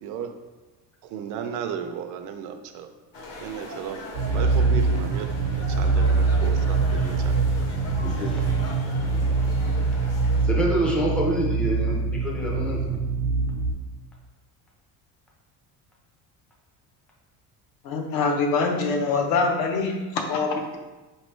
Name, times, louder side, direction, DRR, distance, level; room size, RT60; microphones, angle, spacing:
voice 1, 0.0-0.3 1.0-2.9 3.4-7.4, right 7 dB, 55° right, 7 dB, 0.5 m, -35 dB
sound 1, 3.1-10.5, left 2 dB, 40° left, 0.7 m, -39 dB
sound 2, 4.1-13.7, right 4 dB, 75° right, 0.9 m, -24 dB
voice 2, 8.0-8.5 9.1-9.4 10.4-13.0, right 1 dB, 5° left, -3 dB, 0.4 m, -27 dB
voice 3, 17.8-20.8, left 4 dB, 75° left, 3 dB, 0.8 m, -24 dB
5.0 x 3.1 x 3.1 m, 1.2 s
cardioid pair, 180°, 37 cm